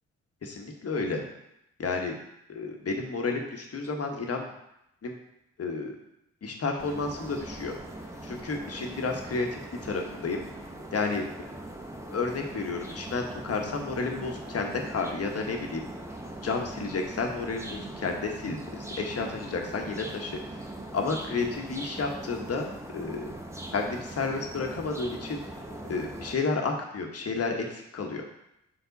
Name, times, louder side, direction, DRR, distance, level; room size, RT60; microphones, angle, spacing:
voice 1, 0.4-1.2 1.8-2.1 2.5-4.5 5.0-5.2 5.6-5.9 6.4-7.7 8.2-10.4 10.9-11.2 12.1-15.9 16.4-20.6 20.9-23.3 23.7-25.4 25.9-28.2, left 4 dB, 55° left, 2 dB, 1.3 m, -31 dB
sound 1, 6.8-26.3, right 1 dB, 10° right, 1.0 m, -41 dB
5.9 x 4.6 x 4.0 m, 0.81 s
supercardioid pair, 55°, 30 cm